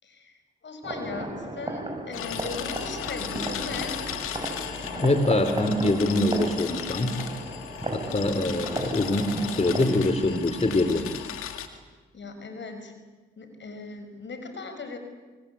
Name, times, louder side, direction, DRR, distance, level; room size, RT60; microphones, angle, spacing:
voice 1, 0.0-0.3 0.6-4.0 12.1-12.9 13.4-15.0, left 3 dB, 60° left, 7 dB, 5.6 m, -38 dB
sound 1, 0.8-9.8, right 2 dB, 25° right, 7.4 m, -35 dB
sound 2, 2.1-11.7, left 9 dB, 85° left, 1.9 m, -36 dB
voice 2, 5.0-7.2 7.9-11.1, left 2 dB, 30° left, 8 dB, 3.0 m, -24 dB
25.0 x 24.5 x 8.5 m, 1.3 s
supercardioid pair, 40°, 21 cm